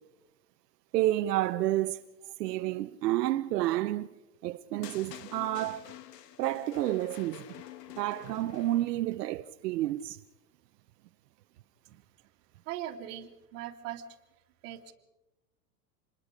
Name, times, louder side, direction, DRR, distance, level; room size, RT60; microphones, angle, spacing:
voice 1, 0.9-2.0 2.4-4.1 4.4-5.9 6.4-7.4 8.0-10.2, right 15 dB, 85° right, 0.9 m, -30 dB
sound 1, 4.8-9.1, left 12 dB, 85° left, 1.4 m, -48 dB
voice 2, 12.7-14.2 14.6-14.9, right 11 dB, 55° right, 2.5 m, -40 dB
27.0 x 21.5 x 5.2 m
supercardioid pair, 175°, 47 cm